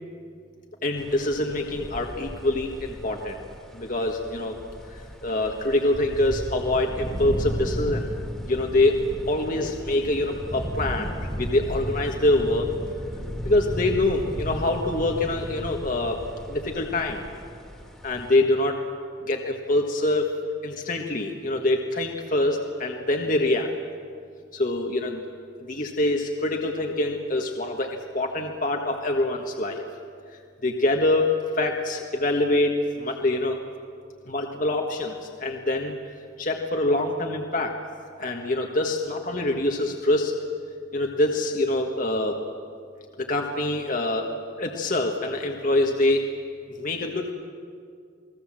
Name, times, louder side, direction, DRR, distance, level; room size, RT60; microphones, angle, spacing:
voice 1, 0.8-3.4 3.7-4.6 5.2-8.1 8.5-12.7 13.4-16.2 16.5-17.3 18.0-18.8 19.3-20.3 20.6-23.7 24.5-25.2 25.6-29.8 30.6-33.6 34.3-35.9 36.4-37.8 38.2-40.3 40.9-42.4 43.2-44.3 44.6-46.3 46.7-47.3, left 2 dB, 40° left, 2 dB, 1.5 m, -25 dB
sound 1, 1.0-18.3, equal, ahead, 2.4 m, -35 dB
29.0 x 20.0 x 7.6 m, 2.3 s
head